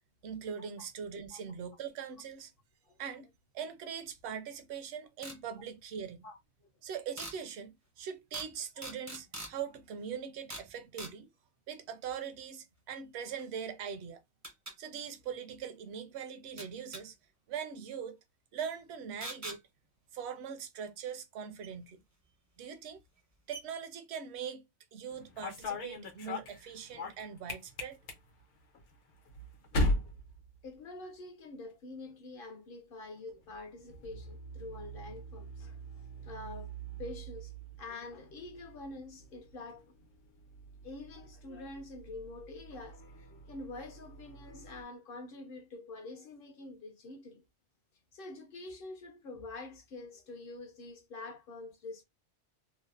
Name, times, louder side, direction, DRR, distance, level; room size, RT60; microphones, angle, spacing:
voice 1, 0.2-2.5 3.0-3.3 3.5-6.2 6.8-11.3 11.7-14.2 14.8-17.1 17.5-18.2 18.5-19.6 20.1-22.0 22.6-23.0 23.5-24.6 24.9-28.0, right 7 dB, 70° right, 0.8 m, -41 dB
sound 1, 5.2-5.4 7.2-7.4 8.3-8.5 8.8-9.5 10.5-10.7 11.0-11.1 13.4-13.5 14.4-14.7 16.6-17.0 19.2-19.6 21.6-21.7 22.7-22.8 23.2-23.3 23.5-23.6, right 1 dB, 25° right, 0.4 m, -43 dB
sound 2, 25.1-31.3 31.6-32.1 33.2-44.8, left 1 dB, 80° left, 1.1 m, -41 dB
voice 2, 30.6-36.7 37.0-37.5 37.8-39.9 40.8-47.4 48.1-52.0, left 3 dB, 60° left, 0.7 m, -46 dB
3.1 x 2.0 x 2.3 m
omnidirectional pair, 1.2 m